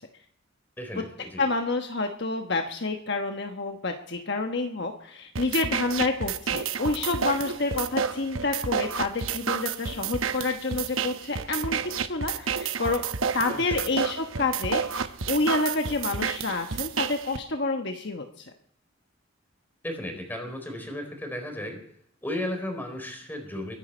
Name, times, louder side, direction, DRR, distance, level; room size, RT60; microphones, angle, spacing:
voice 1, 0.8-1.5 13.5-13.9 19.8-21.8 22.2-23.8, left 1 dB, 10° left, 4 dB, 4.0 m, -35 dB
voice 2, 1.4-13.0 13.3-18.4, left 3 dB, 55° left, 4 dB, 1.2 m, -28 dB
sound 1, 5.3-17.4, right 6 dB, 85° right, 0.9 m, -30 dB
23.0 x 10.5 x 4.4 m, 0.68 s
head